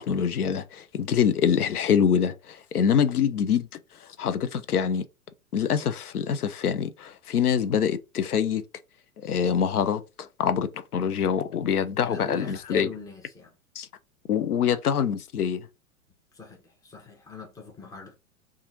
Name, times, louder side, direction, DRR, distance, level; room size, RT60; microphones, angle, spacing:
voice 1, 0.0-3.7 4.2-5.0 5.5-8.6 9.2-12.9 13.8-13.9 14.3-15.7, left 7 dB, 85° left, 0.5 m, -25 dB
voice 2, 12.0-13.5 16.3-18.1, left 3 dB, 10° left, 0.6 m, -41 dB
2.9 x 2.4 x 3.6 m
figure-of-eight pair, 100°, 44 cm